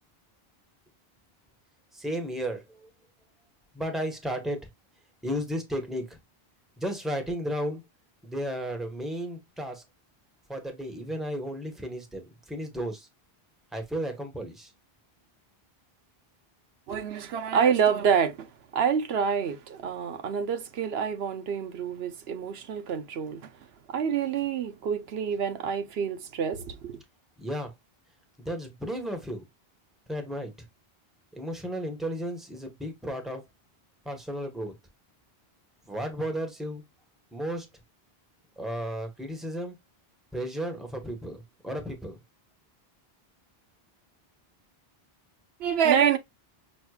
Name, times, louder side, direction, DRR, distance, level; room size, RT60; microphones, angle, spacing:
voice 1, 1.9-2.9 3.7-4.7 5.2-6.2 6.8-7.8 8.2-9.8 10.5-13.1 13.7-14.7 27.4-27.7 28.4-29.4 30.1-30.5 31.3-33.4 34.0-34.7 35.9-36.8 37.3-37.7 38.6-39.8 40.3-42.2, equal, ahead, 1.1 m, -33 dB
voice 2, 16.9-18.4 18.7-23.4 23.9-27.0 45.6-46.2, right 7 dB, 80° right, 0.9 m, -27 dB
5.6 x 3.1 x 2.3 m
omnidirectional pair, 1.0 m